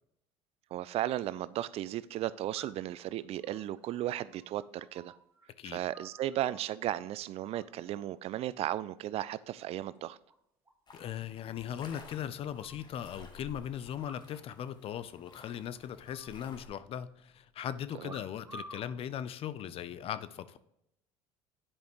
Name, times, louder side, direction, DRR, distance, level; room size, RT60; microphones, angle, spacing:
voice 1, 0.7-5.1 5.6-10.2 18.0-18.1, right 13 dB, 55° right, 17 dB, 0.4 m, -35 dB
sound 1, 2.5-3.0 3.4-5.4 5.7-6.7 7.5-8.0 8.3-8.7 9.1-9.7 9.9-10.0 10.3-10.4 10.7-10.8 11.1-11.2 11.8-12.9 13.9-14.6 14.8-14.9 15.2-15.6 16.0-17.0 18.0-18.9 19.7-20.0, right 1 dB, 20° right, 2.5 m, -53 dB
voice 2, 10.9-20.6, left 9 dB, 50° left, 15 dB, 0.6 m, -39 dB
sound 2, 10.9-16.7, left 3 dB, 35° left, 1.3 m, -54 dB
9.9 x 5.1 x 3.1 m, 0.80 s
supercardioid pair, 75°, 12 cm